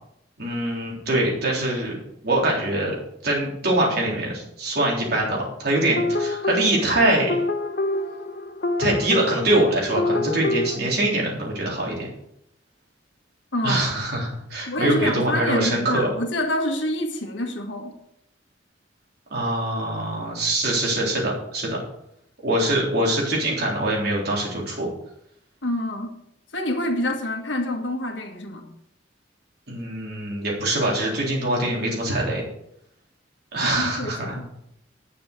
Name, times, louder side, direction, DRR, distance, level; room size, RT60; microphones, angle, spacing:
voice 1, 0.4-2.9 3.2-7.4 8.8-12.1 13.6-16.1 19.3-21.8 22.4-24.9 29.7-32.4 33.5-34.4, right 1 dB, 60° right, -3 dB, 3.8 m, -23 dB
sound 1, 6.0-10.8, left 1 dB, 60° left, 1.0 m, -26 dB
voice 2, 13.5-14.0 14.7-17.9 25.6-26.1 26.5-28.7 33.6-34.4, left 1 dB, 85° left, 4 dB, 1.7 m, -27 dB
9.5 x 6.8 x 6.7 m, 0.78 s
head